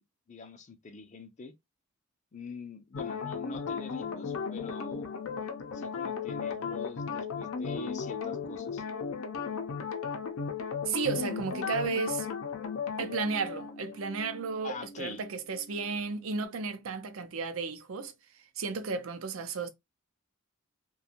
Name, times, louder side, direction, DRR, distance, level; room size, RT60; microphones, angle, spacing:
voice 1, 0.3-1.5 2.3-5.1 5.7-8.8 14.6-15.2, left 4 dB, 35° left, 0.4 m, -44 dB
sound 1, 2.9-16.0 16.3-16.4, left 5 dB, 85° left, 0.5 m, -36 dB
voice 2, 10.9-12.3 13.0-19.7, right 4 dB, 85° right, 0.5 m, -33 dB
2.5 x 2.2 x 2.8 m
head